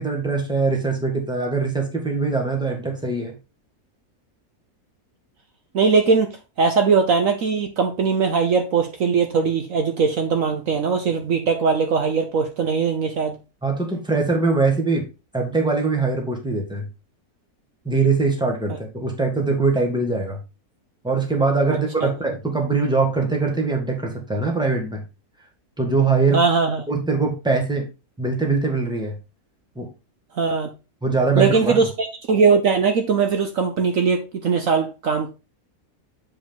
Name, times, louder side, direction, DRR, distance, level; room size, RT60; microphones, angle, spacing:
voice 1, 0.0-3.3 13.6-15.0 15.3-16.8 17.8-20.4 21.0-25.0 25.8-26.4 26.9-27.9 28.2-29.2 29.7-29.9 31.0-31.8, right 4 dB, 5° right, 1.6 m, -22 dB
voice 2, 5.7-13.4 22.0-22.1 26.3-26.8 30.3-30.7 31.4-35.3, right 5 dB, 60° right, 1.2 m, -20 dB
7.8 x 5.0 x 3.6 m
omnidirectional pair, 1.6 m